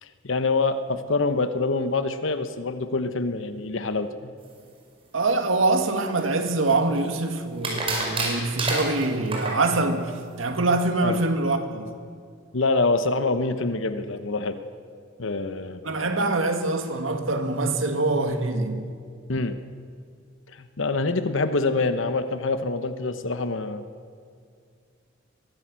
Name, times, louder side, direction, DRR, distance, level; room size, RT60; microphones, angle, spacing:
voice 1, 0.0-4.3 11.0-11.2 12.5-14.6 15.2-15.8 19.3-19.6 20.5-23.8, left 3 dB, 70° left, 1.0 m, -25 dB
voice 2, 5.1-11.9 15.8-18.9, right 2 dB, 80° right, 2.0 m, -24 dB
sound 1, 6.2-7.0 7.6-9.6, right 2 dB, 30° right, 5.2 m, -28 dB
23.0 x 16.0 x 7.6 m
head